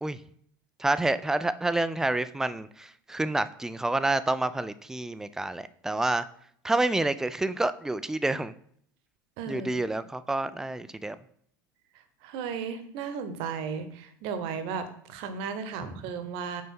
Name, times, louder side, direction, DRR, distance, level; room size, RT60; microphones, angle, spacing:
voice 1, 0.8-6.2 6.6-8.5 9.5-11.2 15.8-15.9, right 2 dB, 5° right, 14 dB, 0.3 m, -28 dB
voice 2, 9.4-9.7 12.2-16.6, right 6 dB, 50° right, 10 dB, 1.0 m, -35 dB
6.2 x 5.4 x 4.4 m, 0.65 s
figure-of-eight pair, 75°, 11 cm